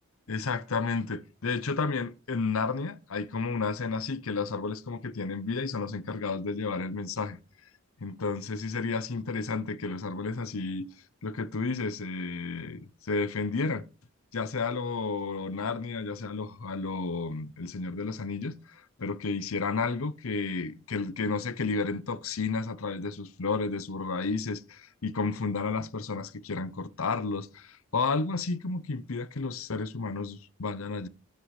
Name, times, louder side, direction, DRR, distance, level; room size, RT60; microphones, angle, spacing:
voice 1, 0.3-7.4 8.0-10.9 11.2-13.9 14.3-18.6 19.0-31.1, left 4 dB, 70° left, 0.7 m, -32 dB
13.0 x 9.0 x 3.2 m
head